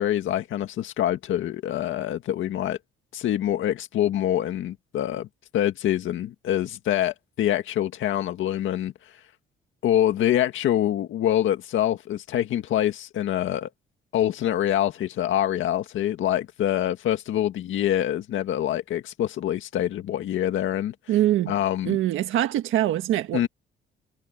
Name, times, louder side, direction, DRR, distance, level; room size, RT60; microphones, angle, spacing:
voice 1, 0.0-2.8 3.1-5.3 5.5-8.9 9.8-13.7 14.1-20.9 21.5-22.0 23.3-23.5, left 11 dB, 75° left, 1.9 m, -25 dB
voice 2, 21.1-21.5 21.8-23.5, right 13 dB, 85° right, 1.5 m, -23 dB
cardioid pair, 90°, 20 cm